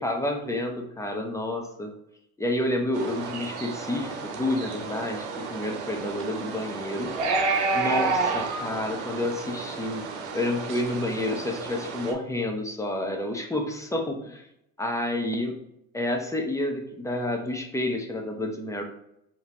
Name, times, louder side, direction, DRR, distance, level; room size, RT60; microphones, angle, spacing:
voice 1, 0.0-1.9 2.4-7.1 7.7-10.0 10.3-14.4 14.8-15.5 15.9-18.8, left 1 dB, 10° left, 3 dB, 0.8 m, -29 dB
sound 1, 2.9-12.1, right 4 dB, 90° right, 0.8 m, -30 dB
4.9 x 2.9 x 2.8 m, 0.80 s
supercardioid pair, 85°, 33 cm